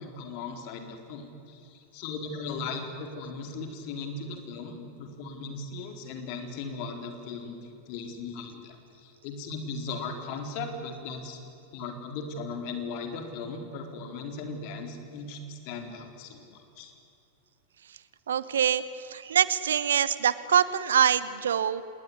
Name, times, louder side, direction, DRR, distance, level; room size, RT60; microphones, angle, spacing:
voice 1, 0.0-11.4 11.7-16.9, left 4 dB, 45° left, 5 dB, 4.0 m, -38 dB
voice 2, 18.3-21.8, right 8 dB, 65° right, 16 dB, 1.0 m, -24 dB
26.5 x 20.0 x 9.9 m, 2.9 s
figure-of-eight pair, 90°, 0 cm